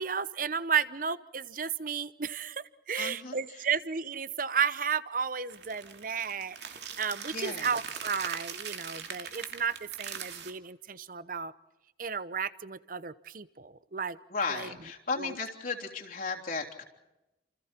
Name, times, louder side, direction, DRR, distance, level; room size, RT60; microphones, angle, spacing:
voice 1, 0.0-6.6 7.0-11.5 12.0-14.2 14.5-14.7 15.2-15.3, right 6 dB, 50° right, 15 dB, 0.9 m, -33 dB
voice 2, 2.9-3.6 7.3-7.8 14.3-16.8, left 4 dB, 50° left, 0 dB, 3.4 m, -35 dB
sound 1, 5.5-10.5, right 7 dB, 70° right, 2.6 m, -41 dB
29.0 x 28.0 x 4.5 m, 0.95 s
head